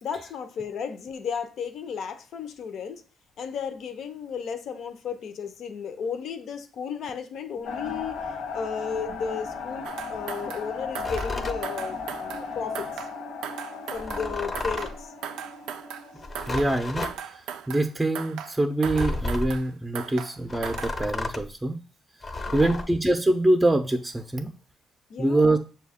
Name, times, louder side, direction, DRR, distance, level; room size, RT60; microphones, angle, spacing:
voice 1, 0.0-3.0 3.4-12.9 13.9-15.1 22.5-22.8 25.1-25.6, left 6 dB, 70° left, 0.6 m, -34 dB
sound 1, 7.6-16.7, left 5 dB, 85° left, 1.0 m, -36 dB
sound 2, 9.8-10.7 10.9-11.4 11.6-12.5 12.7-13.2 13.4-14.3 14.5-15.0 15.2-16.1 16.3-16.8 17.0-17.9 18.1-18.6 18.8-19.7 19.9-20.4 20.6-21.0, right 8 dB, 90° right, 0.3 m, -38 dB
sound 3, 11.0-11.6 13.9-15.0 16.2-17.2 18.8-19.6 20.5-21.5 22.2-22.8, left 2 dB, 30° left, 0.6 m, -32 dB
voice 2, 16.5-17.3 17.7-21.8 22.5-24.5 25.2-25.6, right 1 dB, 10° right, 0.5 m, -24 dB
6.4 x 2.3 x 3.5 m
cardioid pair, 90°, 0 cm